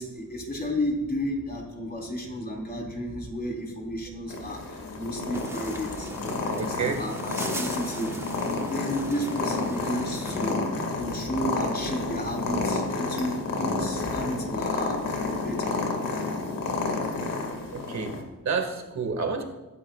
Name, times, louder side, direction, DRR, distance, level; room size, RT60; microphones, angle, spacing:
voice 1, 0.0-4.6 4.9-6.1 6.5-8.2 8.6-10.6 10.9-14.9 15.4-15.8, equal, 30° left, -2 dB, 3.9 m, -32 dB
Purr, 4.3-18.2, left 3 dB, 75° left, 2.2 m, -30 dB
sound 1, 5.3-10.5, right 1 dB, 10° right, 1.3 m, -39 dB
voice 2, 6.4-7.0 17.7-19.4, right 5 dB, 55° right, 4 dB, 2.0 m, -30 dB
23.0 x 11.0 x 2.4 m, 1.1 s
cardioid pair, 100°, 34 cm